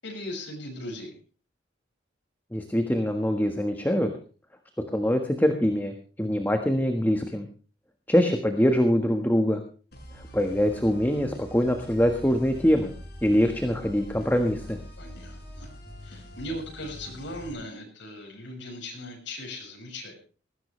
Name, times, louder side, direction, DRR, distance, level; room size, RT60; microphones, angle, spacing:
voice 1, 0.0-1.2 15.0-15.7 16.0-20.1, left 1 dB, 80° left, 0 dB, 6.8 m, -38 dB
voice 2, 2.5-4.1 4.9-7.5 8.1-9.6 10.3-12.9 13.2-14.8, equal, 10° left, 5 dB, 1.5 m, -24 dB
sound 1, 9.9-17.5, equal, 55° left, 7.3 m, -44 dB
20.0 x 16.0 x 3.3 m, 0.36 s
head